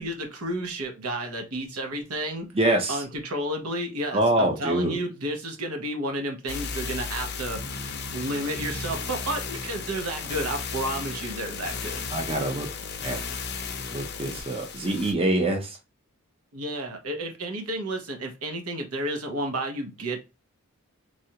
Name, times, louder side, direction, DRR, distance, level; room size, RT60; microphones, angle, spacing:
voice 1, 0.0-2.5 2.9-7.6 8.1-12.1 16.5-20.3, right 1 dB, 80° right, 0.9 m, -31 dB
voice 2, 2.5-3.0 4.1-5.0 12.1-12.7 13.0-13.2 13.9-15.8, right 1 dB, 25° right, 0.5 m, -25 dB
sound 1, 6.5-15.1, left 5 dB, 50° left, 0.5 m, -34 dB
3.2 x 2.5 x 2.8 m
head